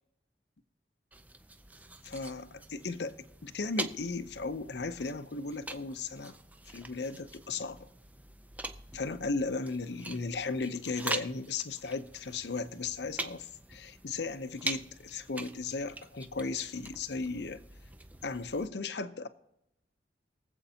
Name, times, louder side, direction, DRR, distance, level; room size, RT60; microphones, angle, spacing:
sound 1, 1.1-18.7, right 2 dB, 10° right, 0.5 m, -44 dB
voice 1, 2.0-6.3 6.7-7.9 8.9-17.6 18.2-19.3, left 3 dB, 70° left, 0.7 m, -36 dB
23.0 x 7.9 x 2.8 m
head